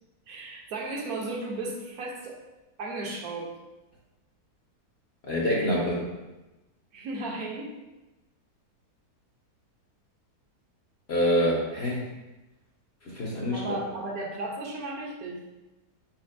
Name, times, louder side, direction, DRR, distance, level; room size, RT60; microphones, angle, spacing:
voice 1, 0.3-2.4 2.8-3.5 6.9-7.7 13.5-15.4, right 2 dB, 70° right, -2 dB, 1.2 m, -35 dB
voice 2, 5.3-6.1 11.1-12.0 13.0-13.6, equal, 50° left, -4 dB, 0.9 m, -26 dB
4.5 x 4.3 x 2.5 m, 1.0 s
omnidirectional pair, 1.7 m